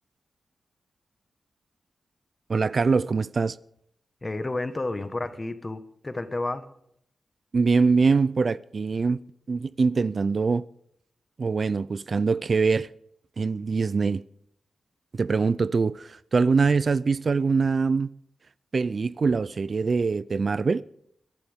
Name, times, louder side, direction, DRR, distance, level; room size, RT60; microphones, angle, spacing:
voice 1, 2.5-3.6 7.5-9.2 9.5-10.6 11.4-12.9 13.4-14.2 15.1-18.1 18.7-20.8, right 4 dB, 50° right, 0.4 m, -23 dB
voice 2, 4.2-6.7, left 2 dB, 25° left, 1.4 m, -31 dB
22.5 x 11.5 x 3.6 m
cardioid pair, 85°, 0 cm